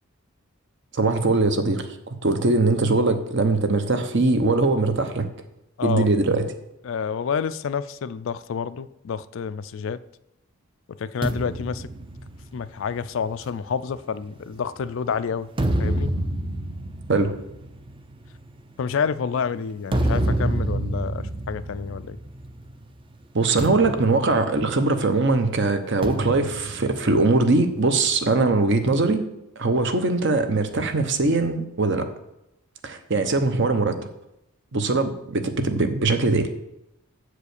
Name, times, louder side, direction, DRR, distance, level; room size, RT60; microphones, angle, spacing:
voice 1, 0.9-5.3 5.8-6.4 17.1-17.3 23.3-29.2 29.6-32.1 32.8-34.0 34.7-36.5, right 3 dB, 55° right, 8 dB, 0.8 m, -21 dB
voice 2, 6.8-10.0 11.0-11.9 12.5-15.5 15.8-16.1 18.8-22.2, left 6 dB, 60° left, 15 dB, 0.3 m, -28 dB
sound 1, 11.2-14.8 15.3-22.8 23.0-23.2 23.6-25.2 26.0-27.8, right 1 dB, 25° right, 0.5 m, -29 dB
7.9 x 4.9 x 6.6 m, 0.86 s
head